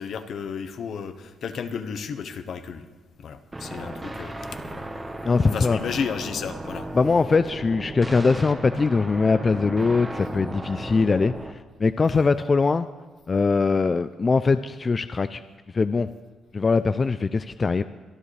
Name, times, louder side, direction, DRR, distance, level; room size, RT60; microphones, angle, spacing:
voice 1, 0.0-2.9 3.2-6.9 12.1-12.3, left 6 dB, 65° left, 10 dB, 1.0 m, -33 dB
sound 1, 3.5-11.5, right 1 dB, 15° right, 1.2 m, -35 dB
voice 2, 5.2-6.0 6.9-12.9 13.3-15.4 15.7-16.1 16.5-17.8, left 4 dB, 30° left, 11 dB, 0.4 m, -22 dB
25.0 x 11.0 x 3.3 m, 1.4 s
cardioid pair, 90°, 0 cm